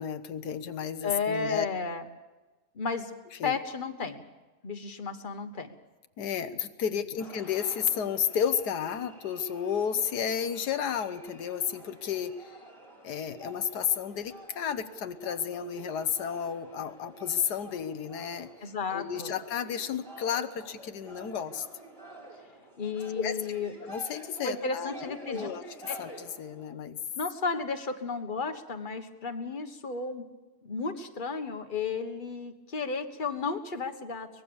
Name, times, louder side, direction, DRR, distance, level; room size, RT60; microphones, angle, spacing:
voice 1, 0.0-1.7 3.4-3.6 6.2-12.5 13.0-21.7 23.1-23.4 23.8-25.6 26.0-27.0, left 8 dB, 90° left, 10 dB, 1.6 m, -32 dB
voice 2, 1.0-2.0 2.7-3.1 3.4-4.2 4.6-5.7 18.6-19.3 22.8-23.7 24.4-25.5 25.9-26.0 27.1-30.2 30.6-34.3, left 4 dB, 35° left, 7 dB, 1.5 m, -33 dB
sound 1, 7.2-26.7, right 1 dB, 15° right, 4.4 m, -49 dB
24.0 x 20.0 x 7.1 m, 1.2 s
omnidirectional pair, 1.7 m